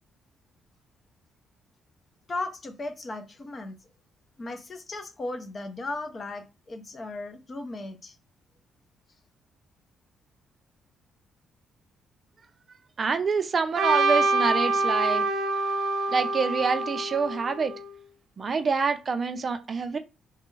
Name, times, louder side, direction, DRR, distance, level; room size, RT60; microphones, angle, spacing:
voice 1, 2.3-3.8 4.4-8.2, left 2 dB, 35° left, 0.6 m, -36 dB
voice 2, 13.0-15.3 16.1-17.7 18.4-20.0, right 5 dB, 40° right, 0.5 m, -26 dB
Trumpet, 13.8-17.9, right 2 dB, 65° right, 0.9 m, -26 dB
3.3 x 2.2 x 3.1 m
cardioid pair, 90°, 0 cm